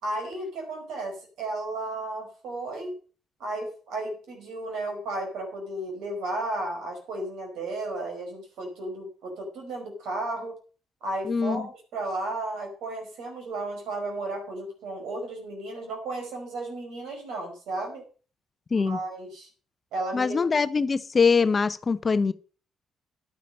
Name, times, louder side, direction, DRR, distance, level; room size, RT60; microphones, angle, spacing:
voice 1, 0.0-2.9 3.4-10.6 11.0-18.0 18.7-19.5 19.9-20.6, right 2 dB, 60° right, 5.0 m, -34 dB
voice 2, 11.3-11.7 18.7-19.0 20.1-22.3, left 5 dB, 35° left, 0.7 m, -23 dB
11.5 x 9.3 x 5.3 m
figure-of-eight pair, 40°, 0 cm